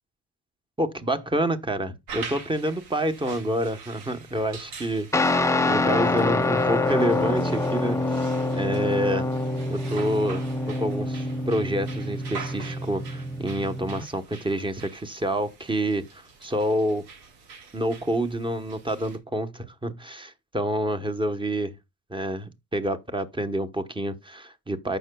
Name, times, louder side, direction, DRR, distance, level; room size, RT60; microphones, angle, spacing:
voice 1, 0.8-5.1 5.6-8.1 8.5-9.3 9.7-17.0 17.7-21.7 22.1-25.0, right 1 dB, 10° right, 1.0 m, -28 dB
sound 1, 2.1-19.2, right 5 dB, 85° right, 2.6 m, -44 dB
Guitar, 5.1-14.0, left 2 dB, 10° left, 0.5 m, -26 dB
14.5 x 5.6 x 2.3 m
cardioid pair, 105°, 39 cm